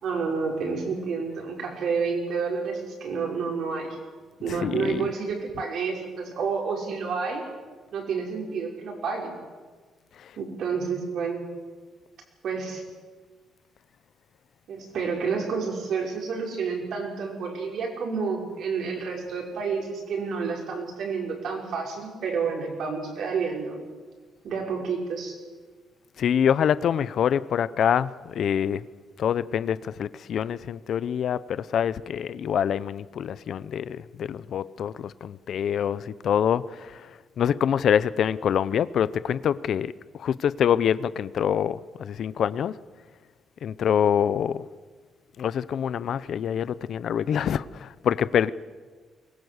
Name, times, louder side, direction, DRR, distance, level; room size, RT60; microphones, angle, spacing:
voice 1, 0.0-3.9 4.4-7.4 7.9-9.4 10.4-11.4 12.4-12.8 14.7-23.8 24.4-25.4, right 5 dB, 60° right, 0 dB, 5.8 m, -29 dB
voice 2, 4.5-5.1 10.2-10.3 26.2-28.9 29.2-37.1 37.4-42.8 43.6-44.7 45.4-48.5, left 8 dB, 50° left, 17 dB, 0.6 m, -25 dB
23.5 x 21.0 x 8.0 m, 1.4 s
cardioid pair, 165°, 0 cm